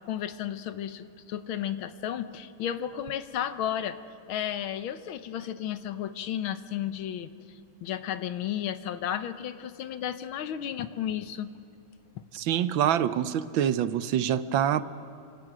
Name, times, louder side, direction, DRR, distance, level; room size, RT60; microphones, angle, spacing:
voice 1, 0.1-4.0 4.3-7.3 7.8-11.5, left 10 dB, 85° left, 1.8 m, -33 dB
voice 2, 12.3-14.8, right 10 dB, 75° right, 1.5 m, -25 dB
28.5 x 26.0 x 6.2 m
omnidirectional pair, 2.2 m